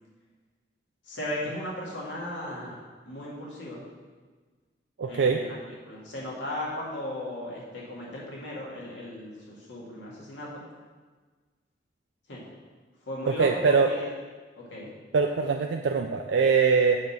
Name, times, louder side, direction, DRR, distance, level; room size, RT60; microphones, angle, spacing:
voice 1, 1.1-2.7 3.1-3.8 5.1-10.6 12.3-12.4 13.0-13.5 13.9-14.1 14.6-14.9, left 1 dB, 85° left, -5 dB, 2.1 m, -36 dB
voice 2, 5.0-5.4 13.3-13.9 15.1-17.0, right 5 dB, 85° right, 3 dB, 0.4 m, -22 dB
7.3 x 3.9 x 6.0 m, 1.4 s
head